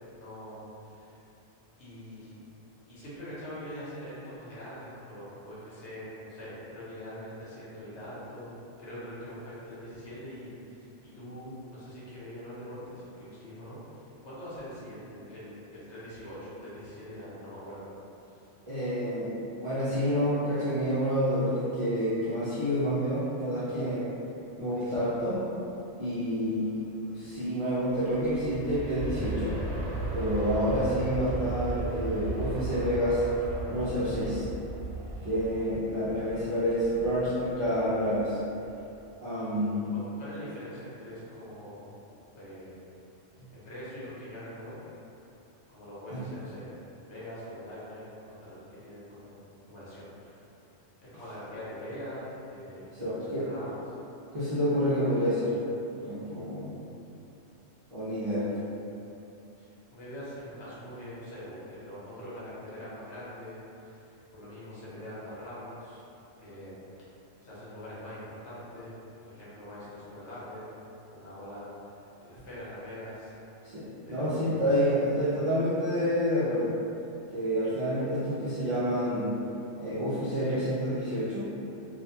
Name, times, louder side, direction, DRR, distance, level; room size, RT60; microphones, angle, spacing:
voice 1, 0.2-1.2 1.8-2.4 2.9-8.5 8.8-17.9 18.2-18.5 24.7-25.1 39.3-39.6 40.2-41.9 42.3-42.8 43.5-44.8 45.7-46.7 47.1-50.4 51.0-53.8 58.1-58.6 59.6-66.1 66.4-66.8 67.4-69.0 69.2-73.3 74.0-74.6, equal, 65° left, -9 dB, 1.1 m, -43 dB
voice 2, 18.7-19.3 19.6-24.1 24.6-25.4 26.0-26.8 27.1-29.5 30.1-33.3 33.7-34.5 35.2-38.4 39.2-39.9 46.1-46.2 52.9-53.4 54.3-55.6 55.9-56.7 57.9-58.5 73.6-76.8 77.3-79.3 79.7-81.5, equal, 55° right, -12 dB, 0.3 m, -28 dB
Aircraft, 27.8-38.5 39.0-39.1, right 2 dB, 70° right, 0.9 m, -36 dB
2.5 x 2.2 x 2.7 m, 2.8 s
omnidirectional pair, 1.3 m